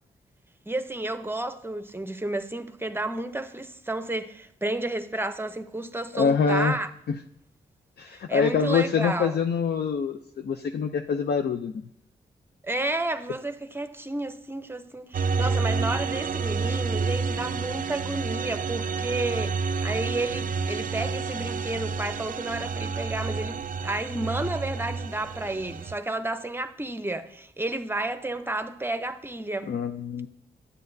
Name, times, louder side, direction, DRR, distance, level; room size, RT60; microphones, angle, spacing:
voice 1, 0.7-6.9 8.1-9.4 12.6-29.7, right 2 dB, 10° right, 0.7 m, -31 dB
voice 2, 6.1-6.8 7.1-7.2 8.0-11.8 29.7-30.3, left 6 dB, 65° left, 0.5 m, -25 dB
sound 1, 15.1-25.9, right 4 dB, 50° right, 0.4 m, -29 dB
9.6 x 9.2 x 2.6 m
cardioid pair, 60°, 18 cm